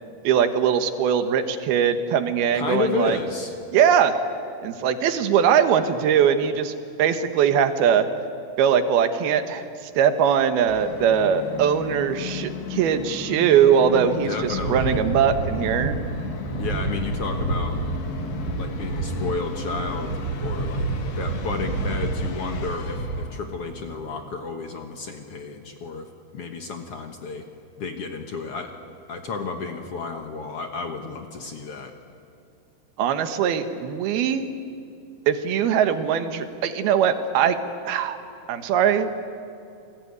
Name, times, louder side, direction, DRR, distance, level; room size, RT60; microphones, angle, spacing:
voice 1, 0.2-3.2 3.7-4.1 4.6-6.7 7.0-8.1 8.6-9.6 10.0-16.0 33.0-34.5 35.3-37.6 37.9-38.2 38.5-39.2, right 8 dB, 75° right, 9 dB, 3.2 m, -21 dB
voice 2, 2.5-3.5 14.2-15.0 16.6-17.8 18.6-20.9 21.2-27.4 27.8-28.8 29.1-31.9, left 4 dB, 60° left, 5 dB, 1.6 m, -31 dB
Musical instrument, 10.7-24.4, left 6 dB, 90° left, 3.8 m, -36 dB
sound 1, 14.4-23.3, right 3 dB, 35° right, 3.2 m, -29 dB
28.5 x 20.5 x 9.6 m, 2.6 s
omnidirectional pair, 4.5 m